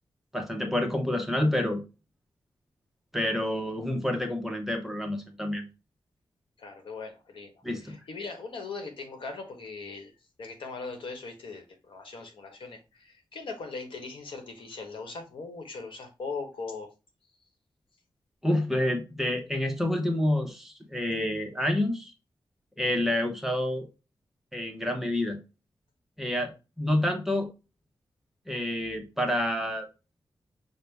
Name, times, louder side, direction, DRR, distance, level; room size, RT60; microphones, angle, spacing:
voice 1, 0.3-1.8 3.1-5.7 7.6-8.0 18.4-22.1 22.8-23.9 24.5-25.4 26.2-27.5 28.5-29.9, left 1 dB, 5° right, 0.6 m, -28 dB
voice 2, 6.6-7.5 7.8-10.1 10.4-16.9, left 4 dB, 90° left, 1.0 m, -40 dB
5.4 x 2.0 x 3.3 m
wide cardioid pair, 160°, 8 cm